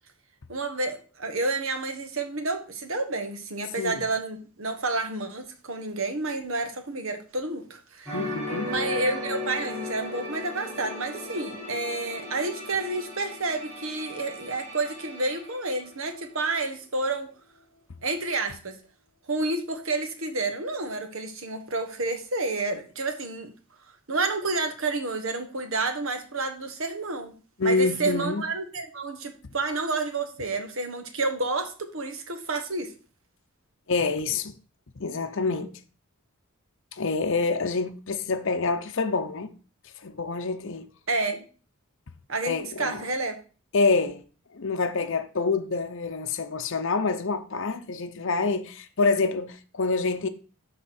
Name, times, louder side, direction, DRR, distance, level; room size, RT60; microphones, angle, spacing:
voice 1, 0.5-8.2 8.6-17.3 18.0-18.8 19.3-23.5 24.1-27.3 27.6-32.9 41.1-41.4 42.3-43.4, right 3 dB, 65° right, 1.5 m, -30 dB
voice 2, 8.1-8.7 27.6-28.4 33.9-34.5 35.0-35.7 36.9-39.5 40.0-40.9 42.4-43.1 43.7-44.2 44.5-50.3, left 3 dB, 55° left, 0.7 m, -27 dB
sound 1, 8.1-16.7 17.0-17.2, left 1 dB, 10° right, 5.6 m, -37 dB
12.0 x 4.2 x 4.4 m
head